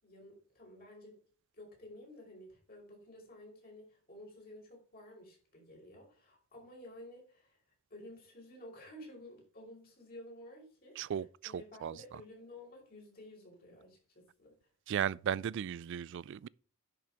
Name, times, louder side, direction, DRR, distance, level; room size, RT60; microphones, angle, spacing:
voice 1, 0.0-1.2 1.5-7.6 7.9-14.5, left 1 dB, 45° left, 5.3 m, -53 dB
voice 2, 11.0-12.0 14.9-16.5, right 8 dB, 60° right, 0.3 m, -36 dB
10.5 x 6.1 x 4.5 m
head